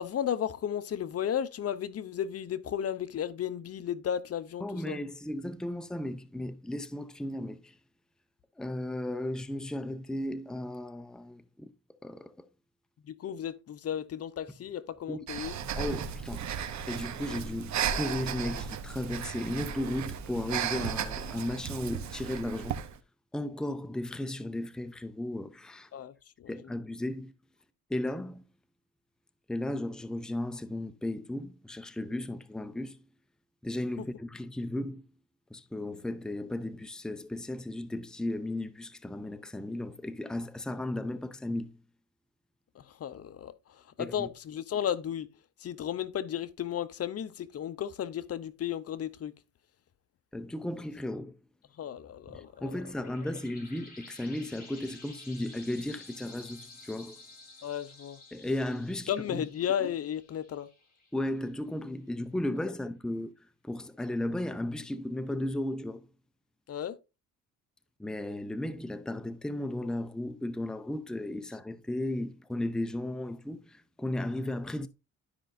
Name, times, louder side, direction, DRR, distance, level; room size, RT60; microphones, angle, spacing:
voice 1, 0.0-5.0 13.0-15.5 25.9-26.5 42.7-45.3 45.6-49.3 51.8-53.1 57.6-58.2 59.1-60.7 66.7-67.0, left 9 dB, 55° left, 0.7 m, -34 dB
voice 2, 4.6-7.8 8.6-11.7 12.0-12.5 15.1-15.2 15.7-16.5 16.9-22.8 23.3-25.9 26.5-27.3 27.9-28.4 29.5-33.0 33.6-35.1 35.5-41.8 44.0-44.3 50.3-51.4 52.3-57.2 58.3-59.4 61.1-66.1 68.0-74.9, left 1 dB, ahead, 0.6 m, -35 dB
Breathing, 15.3-22.9, right 8 dB, 65° right, 1.0 m, -35 dB
sound 1, 52.3-61.5, left 2 dB, 30° left, 4.2 m, -52 dB
12.5 x 5.2 x 2.6 m
cardioid pair, 90°, 30 cm